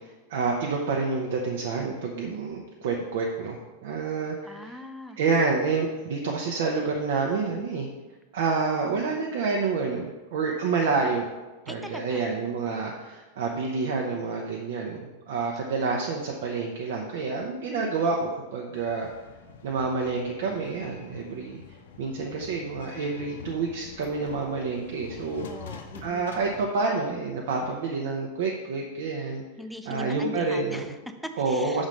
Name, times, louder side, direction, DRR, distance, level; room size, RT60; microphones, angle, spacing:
voice 1, 0.3-4.8 5.2-7.9 8.3-11.3 11.7-19.1 19.6-21.6 22.0-25.5 26.0-29.4 29.8-30.9 31.3-31.9, right 4 dB, 55° right, 0 dB, 0.7 m, -28 dB
voice 2, 4.4-5.2 11.7-12.3 25.4-26.4 29.6-31.9, left 1 dB, ahead, 6 dB, 0.5 m, -40 dB
sound 1, 18.7-26.7, left 5 dB, 60° left, 0.7 m, -45 dB
6.2 x 3.9 x 6.2 m, 1.2 s
figure-of-eight pair, 90°, 0 cm